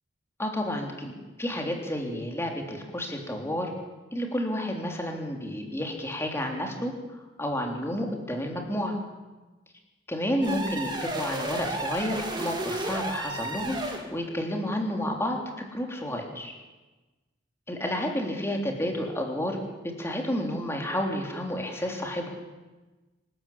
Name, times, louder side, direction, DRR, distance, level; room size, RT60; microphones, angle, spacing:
voice 1, 0.4-3.7 4.1-9.0 10.1-13.8 14.1-16.5 17.7-19.6 20.0-22.3, left 1 dB, 15° left, 1 dB, 3.5 m, -30 dB
sound 1, 10.4-14.1, right 2 dB, 25° right, 3.0 m, -32 dB
26.5 x 13.0 x 8.7 m, 1.2 s
head